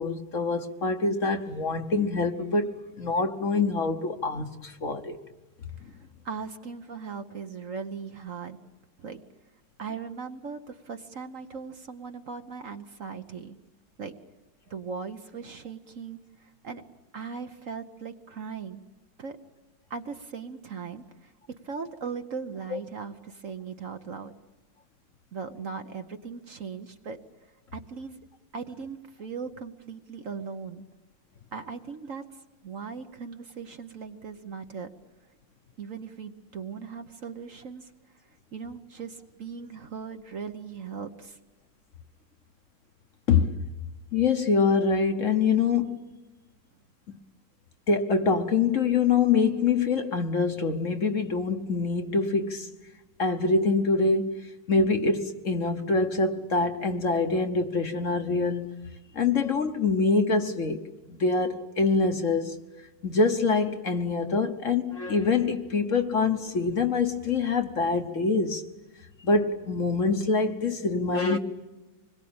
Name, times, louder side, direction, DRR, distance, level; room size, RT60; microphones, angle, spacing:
voice 1, 0.0-5.2 22.7-22.8 43.3-43.6 44.1-46.0 47.1-47.2 47.9-52.7 53.2-58.7 59.1-60.9 61.2-62.6 63.0-68.6 69.2-71.4, left 4 dB, 50° left, 1.3 m, -25 dB
voice 2, 6.2-8.6 9.0-9.2 9.8-13.6 14.0-14.1 14.7-16.8 17.1-18.8 19.2-19.4 19.9-21.3 21.6-24.3 25.3-27.2 27.7-28.2 28.5-30.9 31.5-32.2 32.6-34.9 35.8-37.9 38.5-41.4, right 5 dB, 50° right, 1.2 m, -38 dB
26.0 x 21.5 x 8.7 m
omnidirectional pair, 2.0 m